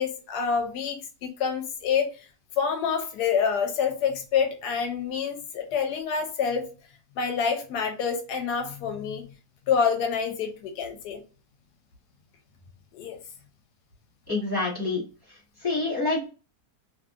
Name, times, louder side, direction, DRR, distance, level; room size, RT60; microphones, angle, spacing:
voice 1, 0.0-2.3 2.6-6.6 7.2-9.3 9.7-11.2 12.9-13.2, left 6 dB, 85° left, 5 dB, 1.2 m, -27 dB
voice 2, 14.3-15.0 15.6-16.3, left 3 dB, 15° right, -6 dB, 1.1 m, -26 dB
2.7 x 2.7 x 2.4 m, 0.34 s
omnidirectional pair, 1.7 m